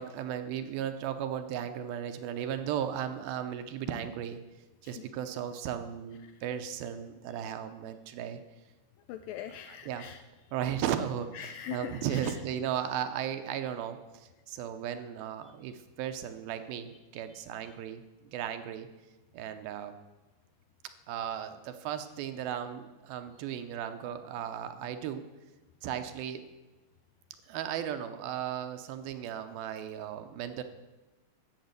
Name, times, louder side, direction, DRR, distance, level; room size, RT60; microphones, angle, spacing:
voice 1, 0.0-4.4 4.8-8.4 9.8-10.0 10.5-11.3 11.7-18.9 19.3-19.9 21.1-25.2 25.8-26.4 27.5-30.6, right 9 dB, 75° right, 8 dB, 2.5 m, -36 dB
voice 2, 9.1-10.2 11.3-12.4 17.6-17.8, left 10 dB, 85° left, 9 dB, 2.0 m, -42 dB
12.0 x 7.8 x 8.1 m, 1.1 s
omnidirectional pair, 4.5 m